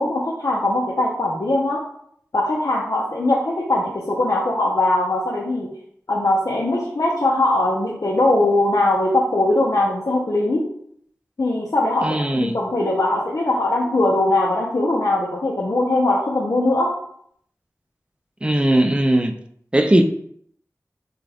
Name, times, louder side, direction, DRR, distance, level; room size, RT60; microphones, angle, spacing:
voice 1, 0.0-1.8 2.3-5.7 6.1-10.7 11.4-16.9, left 2 dB, 70° left, 0.7 m, -20 dB
voice 2, 12.0-12.6 18.4-19.3 19.7-20.0, right 1 dB, 15° right, 0.5 m, -18 dB
5.8 x 2.3 x 3.4 m
wide cardioid pair, 55°, 6 cm